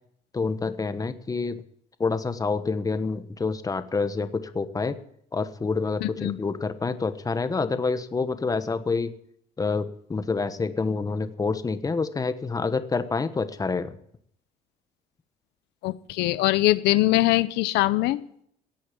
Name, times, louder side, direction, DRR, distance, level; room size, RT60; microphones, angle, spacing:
voice 1, 0.3-1.6 2.0-5.0 5.3-9.1 9.6-14.0, left 4 dB, 20° left, 11 dB, 1.2 m, -27 dB
voice 2, 6.0-6.4 15.8-18.2, left 17 dB, 90° left, 14 dB, 0.8 m, -22 dB
16.0 x 8.5 x 8.6 m, 0.68 s
cardioid pair, 110°, 17 cm